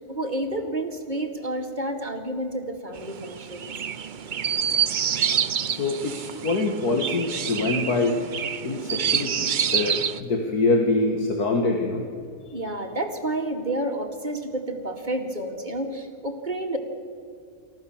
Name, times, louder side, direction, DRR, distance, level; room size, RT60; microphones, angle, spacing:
voice 1, 0.0-3.7 12.5-16.8, right 1 dB, 30° right, 2 dB, 2.4 m, -30 dB
Chirp tweet, 3.0-10.2, right 8 dB, 50° right, 0.6 m, -27 dB
voice 2, 5.6-8.3 8.6-12.1, left 3 dB, 80° left, 2 dB, 2.3 m, -25 dB
28.5 x 14.5 x 7.2 m, 2.3 s
omnidirectional pair, 1.6 m